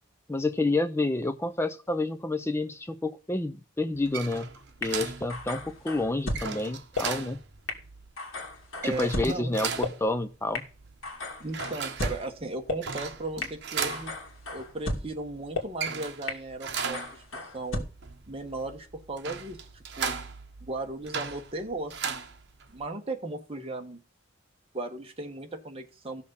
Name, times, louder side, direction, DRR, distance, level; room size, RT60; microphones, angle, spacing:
voice 1, 0.3-4.5 4.8-7.4 8.8-10.7, left 2 dB, 15° left, 11 dB, 0.5 m, -29 dB
sound 1, 3.9-22.9, right 6 dB, 55° right, 1.2 m, -38 dB
sound 2, 4.8-4.9 5.3-6.4 7.0-7.1 7.7-7.8 8.2-9.3 9.8-9.9 10.5-10.6 11.0-12.2 12.7-12.8 13.4-13.5 13.9-15.0 15.5-15.6 16.3-16.4 16.8-17.8, left 2 dB, 75° left, 2.7 m, -33 dB
voice 2, 8.8-9.5 11.4-14.1 14.5-17.2 17.5-17.9 18.3-19.6 20.0-20.1 20.6-22.2 22.7-24.0 24.7-26.2, right 2 dB, 30° right, 3 dB, 1.4 m, -36 dB
14.5 x 6.4 x 5.5 m, 0.36 s
head